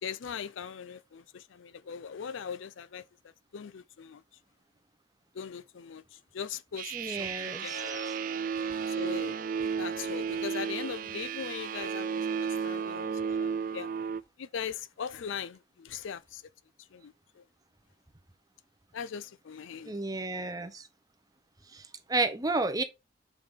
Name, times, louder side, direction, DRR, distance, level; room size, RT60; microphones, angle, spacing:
voice 1, 0.0-4.2 5.3-8.1 8.5-13.9 14.4-16.5 16.8-17.4 18.9-19.9, left 7 dB, 70° left, 0.4 m, -40 dB
sound 1, 6.8-14.2, right 6 dB, 40° right, 0.3 m, -33 dB
voice 2, 6.9-8.1 19.9-20.9 21.7-22.8, right 3 dB, 20° right, 0.7 m, -32 dB
6.9 x 4.7 x 3.6 m
head